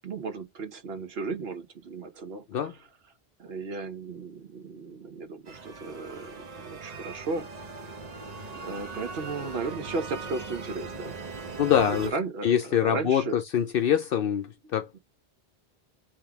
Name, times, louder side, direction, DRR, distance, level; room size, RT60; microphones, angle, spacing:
voice 1, 0.0-2.4 3.4-7.5 8.6-11.2 11.8-13.3 14.9-15.0, right 4 dB, 75° right, 1.1 m, -35 dB
sound 1, 5.4-12.1, right 4 dB, 45° right, 0.9 m, -40 dB
voice 2, 11.6-12.1 12.4-15.0, left 9 dB, 70° left, 0.7 m, -24 dB
3.6 x 3.1 x 4.5 m
omnidirectional pair, 1.0 m